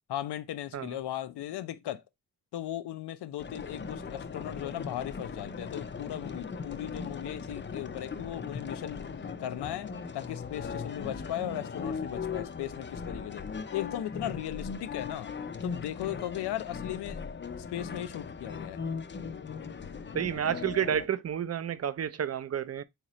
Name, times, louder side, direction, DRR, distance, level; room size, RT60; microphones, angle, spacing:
voice 1, 0.1-2.0 2.5-9.1 9.4-13.4 13.7-15.3 15.6-17.2 17.6-18.8, left 12 dB, 85° left, 0.5 m, -37 dB
sound 1, 3.4-21.1, left 5 dB, 30° left, 0.4 m, -39 dB
voice 2, 20.1-22.8, right 9 dB, 40° right, 0.4 m, -30 dB
3.7 x 2.9 x 2.9 m
cardioid pair, 55°, 39 cm